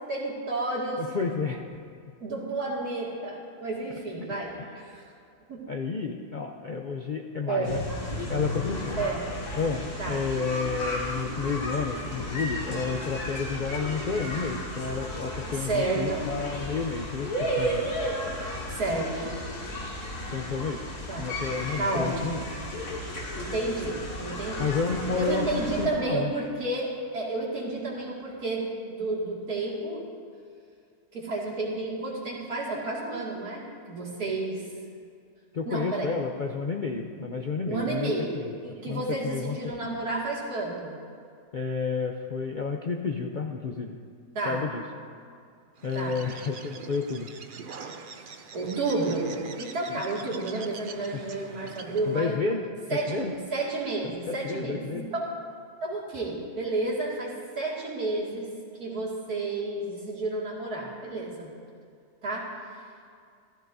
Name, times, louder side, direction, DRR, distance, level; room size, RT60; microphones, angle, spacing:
voice 1, 0.1-1.1 2.2-5.1 5.5-5.6 7.5-7.8 9.0-9.3 10.0-10.2 15.5-16.2 18.7-19.3 21.1-21.3 21.8-22.4 23.4-24.7 25.2-30.0 31.1-34.6 35.7-36.1 37.7-38.4 38.6-41.0 44.3-44.6 45.9-46.2 48.2-49.3 49.6-52.4 52.9-55.3 55.8-58.5 58.8-61.5 62.2-62.5, right 2 dB, 75° right, -5 dB, 2.8 m, -31 dB
voice 2, 1.0-1.6 4.6-4.7 5.7-7.8 8.3-9.0 9.6-17.9 20.3-22.4 24.6-26.3 35.5-38.1 38.4-38.5 38.9-39.6 41.5-44.0 44.4-44.8 45.8-47.3 49.9-50.0 51.1-51.2 52.1-53.3 54.0-55.1, left 5 dB, 55° left, 2 dB, 0.5 m, -31 dB
sound 1, 7.6-25.9, equal, 85° left, 2.7 m, -34 dB
Bird, 45.8-52.4, right 5 dB, 55° right, 0.6 m, -43 dB
16.0 x 14.5 x 2.7 m, 2.3 s
omnidirectional pair, 1.6 m